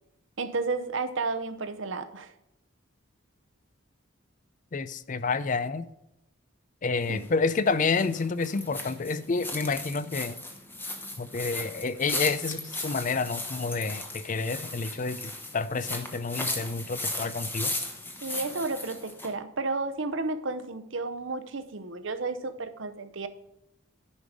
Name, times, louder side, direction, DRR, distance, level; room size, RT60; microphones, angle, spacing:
voice 1, 0.4-2.3 7.1-7.2 18.2-23.3, right 3 dB, 65° right, 10 dB, 0.8 m, -32 dB
voice 2, 4.7-5.9 6.8-10.4 11.2-17.7, left 4 dB, 40° left, 15 dB, 0.5 m, -29 dB
Walking through grass, 7.0-19.3, left 2 dB, 10° left, 1.1 m, -36 dB
10.5 x 5.3 x 4.9 m, 0.89 s
head